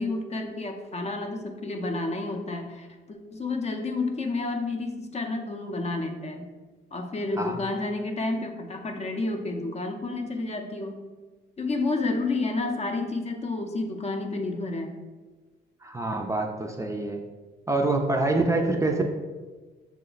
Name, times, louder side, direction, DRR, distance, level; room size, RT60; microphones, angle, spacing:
voice 1, 0.0-6.5 6.9-11.0 11.6-14.9, left 2 dB, 35° left, 4 dB, 0.6 m, -30 dB
voice 2, 15.8-17.2 17.7-19.0, right 2 dB, 15° right, 2 dB, 0.4 m, -26 dB
5.8 x 2.1 x 3.9 m, 1.3 s
cardioid pair, 90°, 20 cm